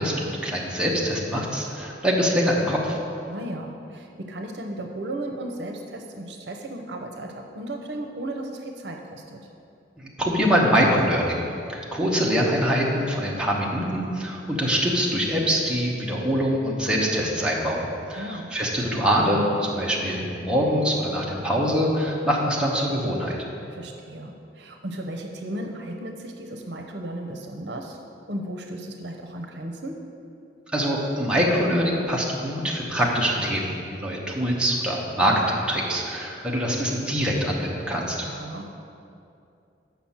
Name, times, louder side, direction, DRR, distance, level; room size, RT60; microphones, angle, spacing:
voice 1, 0.0-3.0 10.0-23.5 30.7-38.2, equal, 5° right, -4 dB, 1.0 m, -24 dB
voice 2, 3.3-9.4 18.1-18.5 23.7-28.0 28.3-30.0 38.3-38.6, right 1 dB, 70° right, 2 dB, 0.7 m, -35 dB
6.0 x 5.9 x 7.2 m, 2.6 s
head